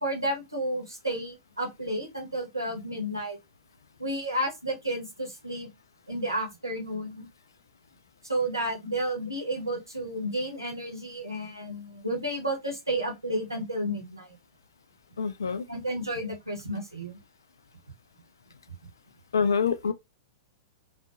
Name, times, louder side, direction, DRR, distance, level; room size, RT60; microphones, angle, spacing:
voice 1, 0.0-3.4 4.0-5.7 6.1-7.3 8.2-14.4 15.7-17.2, right 1 dB, 85° right, 1.0 m, -32 dB
voice 2, 15.2-15.6 19.3-19.9, left 5 dB, 70° left, 0.3 m, -25 dB
2.6 x 2.4 x 2.3 m
figure-of-eight pair, 100°, 2 cm